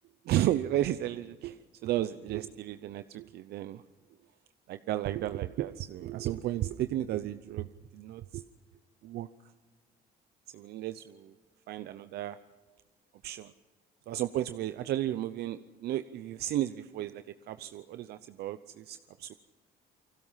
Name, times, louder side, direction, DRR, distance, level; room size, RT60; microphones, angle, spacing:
voice 1, 0.2-3.8 4.7-8.4 9.0-9.3 10.5-11.3 11.7-12.4 13.2-13.5 14.1-19.4, right 13 dB, 70° right, 12 dB, 0.7 m, -33 dB
29.0 x 20.5 x 5.7 m, 1.4 s
cardioid pair, 110°, 17 cm